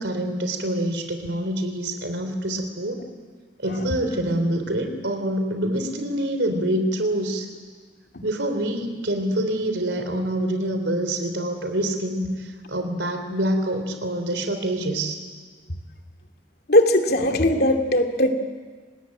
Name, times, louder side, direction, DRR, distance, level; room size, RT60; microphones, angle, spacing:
voice 1, 0.0-3.0 3.6-7.5 8.2-15.2, right 1 dB, 90° right, 7 dB, 3.6 m, -26 dB
voice 2, 16.7-18.3, left 1 dB, 60° left, 4 dB, 2.7 m, -19 dB
29.0 x 19.5 x 9.1 m, 1.5 s
head